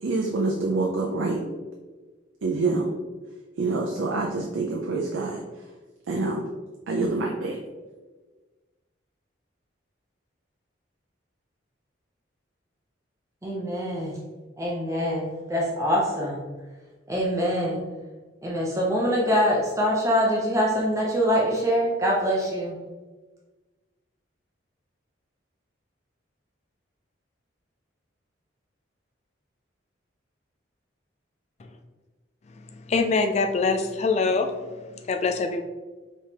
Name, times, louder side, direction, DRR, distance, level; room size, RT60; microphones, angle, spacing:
voice 1, 0.0-1.4 2.4-2.9 3.6-5.4 6.1-6.5 6.9-7.6, right 3 dB, 80° right, 0 dB, 0.5 m, -26 dB
voice 2, 13.4-14.1 14.6-16.4 17.1-17.8 18.4-22.8, equal, 15° right, -3 dB, 0.6 m, -24 dB
voice 3, 32.9-34.5 35.1-35.6, left 4 dB, 35° left, 5 dB, 0.3 m, -23 dB
4.7 x 3.4 x 2.9 m, 1.3 s
head